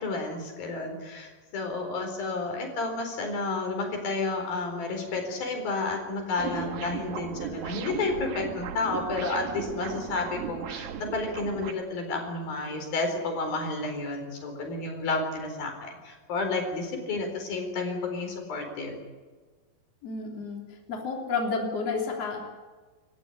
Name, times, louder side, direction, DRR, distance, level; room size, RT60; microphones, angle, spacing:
voice 1, 0.0-19.0, left 3 dB, 85° left, 4 dB, 6.1 m, -31 dB
sound 1, 6.4-11.7, right 9 dB, 90° right, 3.3 m, -36 dB
voice 2, 20.0-20.6 20.9-22.4, left 4 dB, 45° left, 0 dB, 4.2 m, -30 dB
28.5 x 14.5 x 9.9 m, 1.4 s
omnidirectional pair, 4.1 m